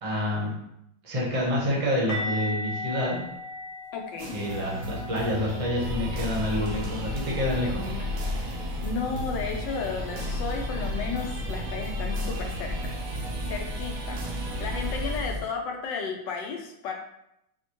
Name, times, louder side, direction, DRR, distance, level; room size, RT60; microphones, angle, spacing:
voice 1, 0.0-0.5 1.0-3.2 4.3-7.9, left 1 dB, 30° right, -4 dB, 0.6 m, -28 dB
sound 1, 2.1-7.9 8.1-8.4 8.7-8.9 12.1-12.2, left 1 dB, 55° left, 0.9 m, -38 dB
voice 2, 3.9-4.3 7.8-13.0 13.5-14.2 14.6-16.9, left 5 dB, 80° left, 2 dB, 1.3 m, -34 dB
sound 2, 4.2-15.2, right 2 dB, 65° right, 0.9 m, -38 dB
sound 3, 5.8-15.4, left 1 dB, 90° right, 0.4 m, -33 dB
4.9 x 2.1 x 2.9 m, 0.79 s
omnidirectional pair, 2.0 m